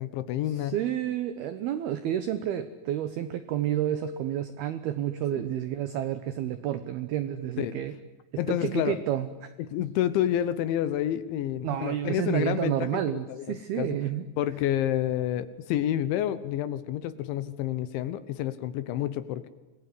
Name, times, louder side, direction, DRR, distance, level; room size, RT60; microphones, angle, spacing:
voice 1, 0.0-0.8 5.3-5.4 7.6-7.8 8.4-9.0 9.6-14.0 14.4-19.5, left 11 dB, 75° left, 14 dB, 3.1 m, -29 dB
voice 2, 0.6-7.9 8.5-9.5 11.6-14.3, right 11 dB, 80° right, 11 dB, 2.2 m, -30 dB
26.5 x 20.0 x 10.0 m, 1.1 s
omnidirectional pair, 5.9 m